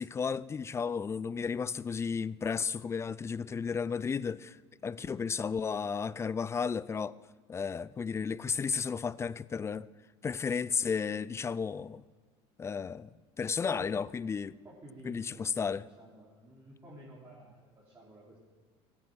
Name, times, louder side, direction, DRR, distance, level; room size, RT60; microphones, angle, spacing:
voice 1, 0.0-4.6 4.8-7.1 7.5-9.9 10.2-12.0 12.6-13.1 13.4-14.5 15.0-15.8, left 6 dB, 20° left, 0.4 m, -33 dB
voice 2, 13.5-13.8 14.6-18.4, right 1 dB, 20° right, 3.6 m, -52 dB
15.5 x 9.2 x 6.3 m
supercardioid pair, 105°, 14 cm